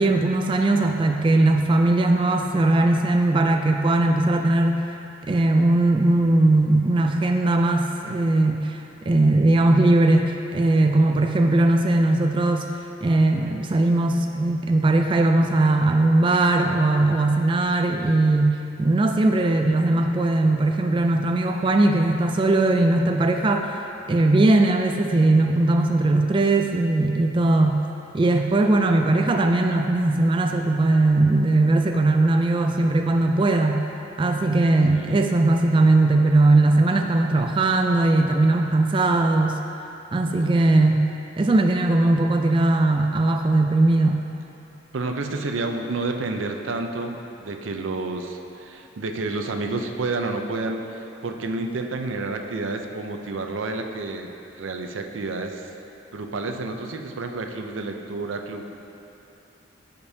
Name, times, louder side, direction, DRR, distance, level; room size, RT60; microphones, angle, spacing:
voice 1, 0.0-4.9 5.2-12.7 13.0-23.8 24.1-27.8 28.1-33.8 34.2-39.6 40.1-41.0 41.4-44.2, right 2 dB, 25° right, 4 dB, 0.3 m, -19 dB
voice 2, 34.9-35.2 44.9-54.3 54.6-55.7 56.1-58.7, right 3 dB, 90° right, 4 dB, 0.6 m, -30 dB
14.0 x 5.2 x 2.7 m, 2.8 s
head